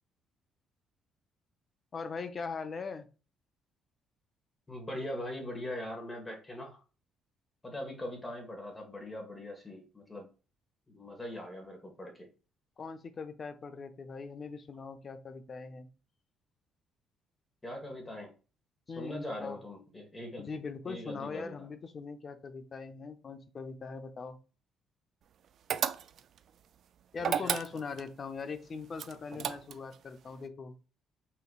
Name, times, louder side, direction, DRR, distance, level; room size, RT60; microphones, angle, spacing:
voice 1, 1.9-3.1 12.8-15.9 18.9-19.6 20.4-24.4 27.1-30.8, left 5 dB, 40° left, 10 dB, 0.6 m, -41 dB
voice 2, 4.7-6.8 7.6-10.3 10.9-12.3 17.6-18.3 19.0-20.5 20.8-21.5 27.4-27.6 29.4-29.5, left 1 dB, 20° left, 1 dB, 1.5 m, -41 dB
sound 1, 25.7-26.4 27.2-28.1 29.0-30.0, right 9 dB, 60° right, 0.3 m, -32 dB
5.6 x 3.1 x 2.4 m, 0.34 s
cardioid pair, 85°, 0 cm